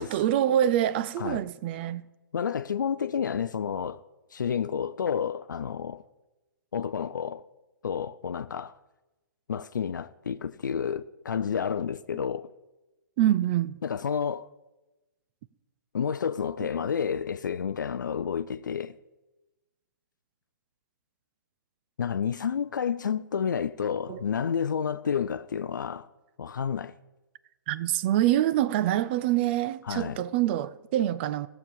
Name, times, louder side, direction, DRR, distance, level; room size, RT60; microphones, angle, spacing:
voice 1, 0.0-2.0 13.2-13.8 24.1-24.2 27.7-31.5, right 12 dB, 30° right, 0.4 m, -25 dB
voice 2, 2.3-4.0 4.3-6.0 6.7-7.4 7.8-8.8 9.5-12.5 13.8-14.5 15.9-19.0 22.0-26.1 26.4-26.9 29.8-30.2, left 7 dB, 65° left, 0.5 m, -30 dB
16.5 x 7.1 x 5.4 m
figure-of-eight pair, 125°, 11 cm